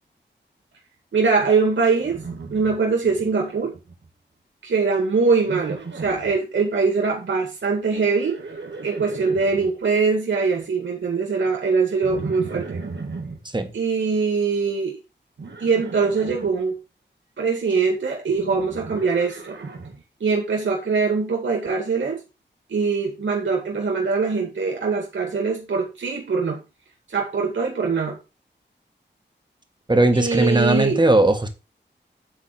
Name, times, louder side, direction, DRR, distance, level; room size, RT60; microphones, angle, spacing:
voice 1, 1.1-2.2 2.5-3.7 4.6-8.3 8.8-12.8 13.7-15.0 15.6-16.8 17.4-19.6 20.2-22.2 22.7-26.6 27.1-28.2 30.1-31.0, right 4 dB, 85° right, 1.9 m, -22 dB
Livestock farm animals working animals, 2.0-3.3 3.6-4.1 5.4-6.4 8.0-9.7 12.0-13.4 15.4-16.5 18.3-20.0, right 4 dB, 70° right, 1.8 m, -36 dB
voice 2, 29.9-31.5, right 2 dB, 25° right, 1.8 m, -18 dB
9.2 x 4.0 x 5.9 m
wide cardioid pair, 60°, 19 cm